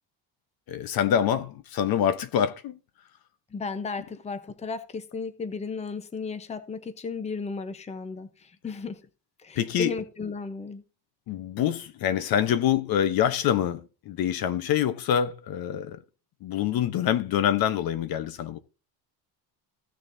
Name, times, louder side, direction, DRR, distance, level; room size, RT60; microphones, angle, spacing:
voice 1, 0.7-2.8 9.6-9.9 11.3-16.0 16.4-18.6, left 9 dB, 55° left, 0.9 m, -25 dB
voice 2, 3.5-9.0 9.4-10.8, left 4 dB, 15° left, 0.8 m, -34 dB
16.0 x 6.4 x 2.7 m
cardioid pair, 145°, 43 cm